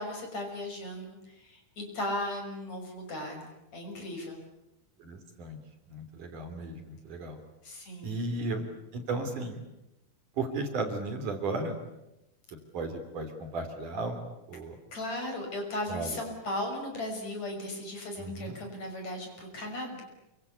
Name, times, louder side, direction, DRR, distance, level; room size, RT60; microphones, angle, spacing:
voice 1, 0.0-3.5 3.7-4.4 7.6-8.2 14.9-20.0, left 1 dB, 45° left, 3 dB, 7.1 m, -36 dB
voice 2, 5.0-5.6 5.9-7.4 8.0-8.6 8.9-9.6 10.4-11.8 12.5-14.2 14.5-14.7 15.9-16.1 18.2-18.6, right 3 dB, 55° right, 6 dB, 4.7 m, -35 dB
28.0 x 25.0 x 8.4 m, 0.89 s
omnidirectional pair, 4.4 m